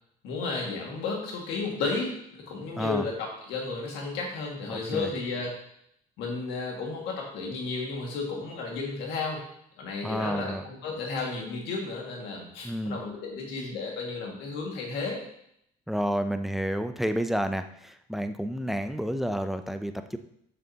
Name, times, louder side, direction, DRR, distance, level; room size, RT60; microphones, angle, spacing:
voice 1, 0.2-5.5 6.2-9.5 9.8-15.2, left 4 dB, 85° left, -1 dB, 1.9 m, -33 dB
voice 2, 4.7-5.1 10.0-10.6 12.6-13.0 15.9-20.2, equal, ahead, 8 dB, 0.4 m, -30 dB
7.0 x 6.5 x 2.8 m, 0.73 s
cardioid pair, 110°, 17 cm